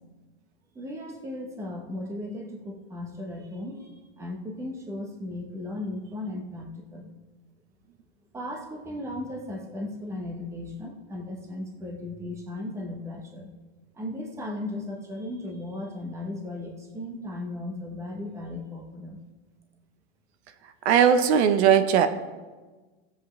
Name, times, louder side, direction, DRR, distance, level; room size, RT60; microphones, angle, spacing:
voice 1, 0.7-7.1 8.3-13.5 13.9-19.2, left 1 dB, 10° right, 1 dB, 1.0 m, -36 dB
voice 2, 20.8-22.1, right 8 dB, 70° right, 10 dB, 0.9 m, -19 dB
16.0 x 7.9 x 3.2 m, 1.3 s
supercardioid pair, 170°, 34 cm